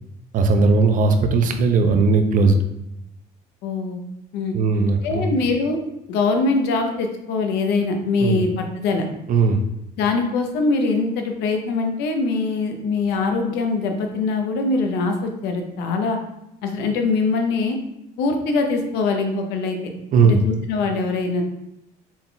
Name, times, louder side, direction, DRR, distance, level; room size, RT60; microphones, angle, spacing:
voice 1, 0.3-2.6 4.5-5.3 8.2-8.4 9.3-9.6 20.1-20.4, right 4 dB, 50° right, 6 dB, 0.6 m, -17 dB
voice 2, 3.6-4.0 4.3-4.5 5.0-5.8 6.1-9.0 10.0-16.2 16.6-17.8 18.2-19.8 20.2-21.4, left 3 dB, 85° left, 4 dB, 0.7 m, -22 dB
4.2 x 3.8 x 2.2 m, 0.83 s
cardioid pair, 110°, 17 cm